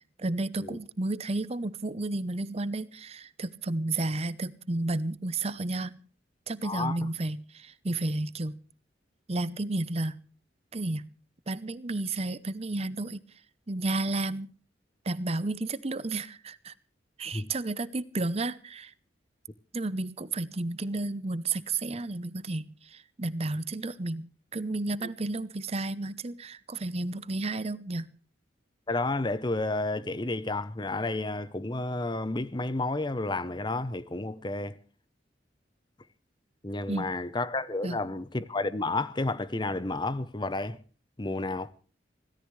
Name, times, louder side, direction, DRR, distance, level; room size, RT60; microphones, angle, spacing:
voice 1, 0.2-5.9 6.5-8.6 9.3-10.2 10.7-11.1 11.5-13.2 13.7-14.5 15.1-16.7 17.2-18.9 19.7-28.1 36.9-37.1 37.8-38.0, right 2 dB, 35° right, 0.8 m, -32 dB
voice 2, 6.6-7.1 17.3-17.5 28.9-34.7 36.6-40.8 41.2-41.7, left 2 dB, 25° left, 0.8 m, -31 dB
25.5 x 17.0 x 3.2 m
head